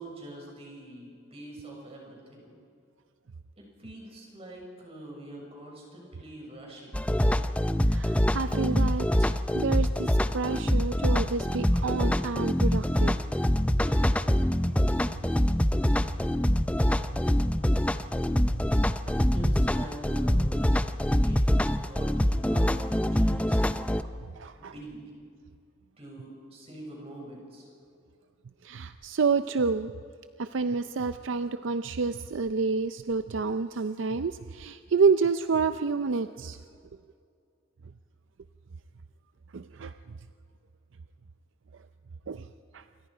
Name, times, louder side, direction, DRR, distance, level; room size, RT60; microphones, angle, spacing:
voice 1, 0.0-2.5 3.6-7.0 19.3-20.7 21.1-23.6 24.6-25.1 26.0-27.7, right 1 dB, 30° right, -1 dB, 6.6 m, -45 dB
sound 1, 6.9-24.0, equal, 5° left, 0.6 m, -25 dB
voice 2, 7.9-13.1 24.4-24.7 28.6-29.9 30.4-36.6 39.5-39.9 42.3-42.4 42.7-42.8, right 4 dB, 65° right, 11 dB, 0.5 m, -29 dB
28.0 x 24.0 x 5.1 m, 2.4 s
head